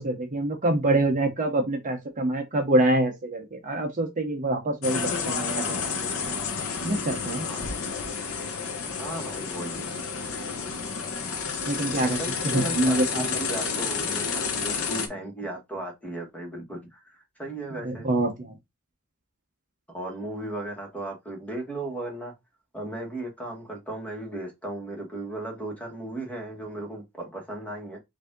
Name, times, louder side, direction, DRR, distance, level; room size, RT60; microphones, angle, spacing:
voice 1, 0.0-5.9 6.8-7.5 11.7-13.7 17.7-18.5, right 1 dB, 35° right, 0.8 m, -26 dB
sound 1, 4.8-15.1, left 5 dB, 65° left, 0.9 m, -30 dB
voice 2, 7.5-7.8 9.0-9.9 12.2-18.1 19.9-22.3 22.7-28.0, right 2 dB, 5° left, 1.5 m, -36 dB
4.8 x 2.7 x 3.6 m
head